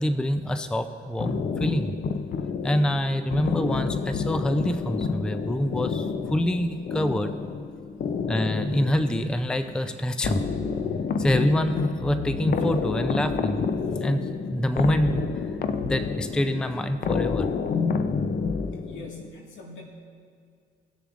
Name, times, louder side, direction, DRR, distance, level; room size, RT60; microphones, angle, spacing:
voice 1, 0.0-1.9 2.6-7.3 8.3-10.5 11.2-13.7 14.0-15.2 15.8-17.5, equal, 5° left, 9 dB, 0.4 m, -26 dB
sound 1, 1.2-19.3, left 5 dB, 50° left, 0.6 m, -29 dB
voice 2, 18.9-19.8, left 2 dB, 75° left, -1 dB, 1.9 m, -43 dB
18.5 x 6.8 x 2.5 m, 2.2 s
cardioid pair, 90°, 20 cm